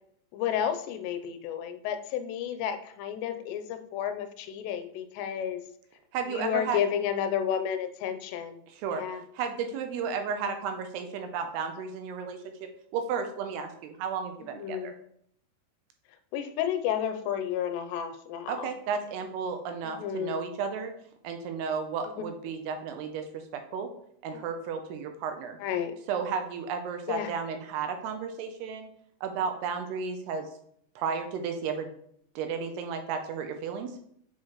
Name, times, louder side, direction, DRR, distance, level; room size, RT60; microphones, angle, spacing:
voice 1, 0.3-5.6 6.3-8.6 8.9-9.2 14.6-15.0 16.3-18.7 20.0-20.4 24.3-24.4 25.6-26.0 27.1-27.3, left 9 dB, 85° left, 8 dB, 2.7 m, -31 dB
voice 2, 6.1-6.8 8.7-9.1 9.3-12.4 12.9-14.9 18.5-20.9 21.2-23.9 24.2-25.6 26.1-28.9 29.2-30.5 31.0-31.9 32.4-34.0, right 6 dB, 80° right, 6 dB, 2.5 m, -33 dB
7.4 x 4.6 x 3.0 m, 0.69 s
omnidirectional pair, 4.9 m